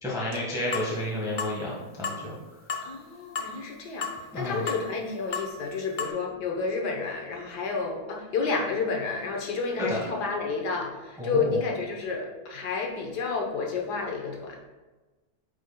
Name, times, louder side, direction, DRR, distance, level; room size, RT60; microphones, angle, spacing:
voice 1, 0.0-2.4 4.3-4.7 9.8-10.0 11.2-11.6, left 1 dB, ahead, -6 dB, 1.3 m, -31 dB
sound 1, 0.7-0.9 1.4-1.6 2.0-2.2 2.7-2.9 3.4-3.5 4.0-4.2 4.7-4.9 5.3-5.5 6.0-6.1, left 5 dB, 70° left, 0.4 m, -32 dB
voice 2, 2.8-14.6, left 4 dB, 90° left, 0 dB, 1.6 m, -30 dB
9.4 x 5.0 x 2.2 m, 1.2 s
omnidirectional pair, 1.7 m